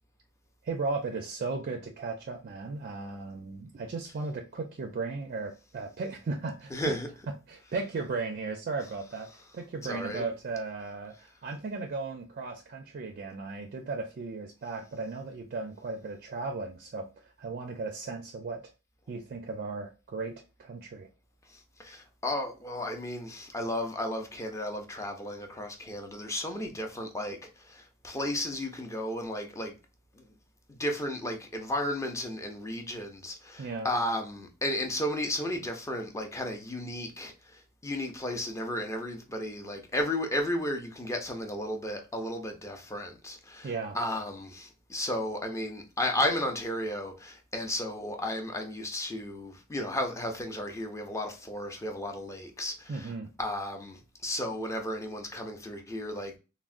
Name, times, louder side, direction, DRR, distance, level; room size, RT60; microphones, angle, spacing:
voice 1, 0.6-7.0 7.5-18.6 19.1-21.1 33.6-33.9 43.6-44.0 52.9-53.3, right 3 dB, 45° right, 0.4 m, -36 dB
voice 2, 6.7-7.1 9.9-10.2 21.5-29.8 30.1-30.2 30.7-53.1 53.4-56.4, left 1 dB, 15° left, 0.5 m, -34 dB
3.5 x 2.1 x 2.4 m
head